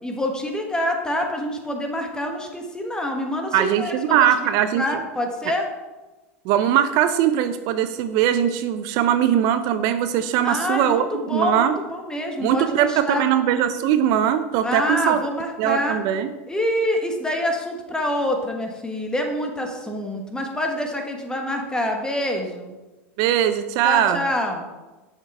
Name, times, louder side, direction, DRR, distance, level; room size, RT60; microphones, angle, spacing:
voice 1, 0.0-4.5 4.7-5.7 10.4-13.3 14.6-16.0 16.5-22.7 23.8-24.7, left 1 dB, 10° left, 3 dB, 1.3 m, -26 dB
voice 2, 3.5-4.8 6.4-11.8 12.4-15.2 15.6-16.3 23.2-24.3, right 10 dB, 55° right, 10 dB, 0.4 m, -20 dB
7.1 x 5.9 x 3.4 m, 1.1 s
hypercardioid pair, 95°, 8 cm